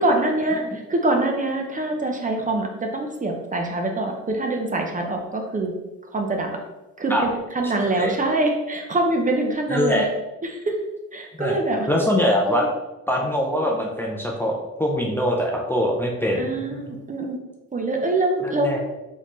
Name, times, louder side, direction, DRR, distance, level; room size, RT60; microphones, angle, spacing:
voice 1, 0.0-5.7 6.1-6.6 7.0-10.0 10.4-10.7 11.1-11.9 12.5-12.7 16.3-17.4 17.7-18.8, right 2 dB, 25° right, 2 dB, 0.7 m, -24 dB
voice 2, 9.7-10.1 11.4-11.6 11.9-12.7 13.1-16.5 16.9-17.0 18.4-18.8, left 1 dB, 5° left, -1 dB, 0.6 m, -23 dB
4.0 x 4.0 x 3.1 m, 1.0 s
cardioid pair, 90°, 30 cm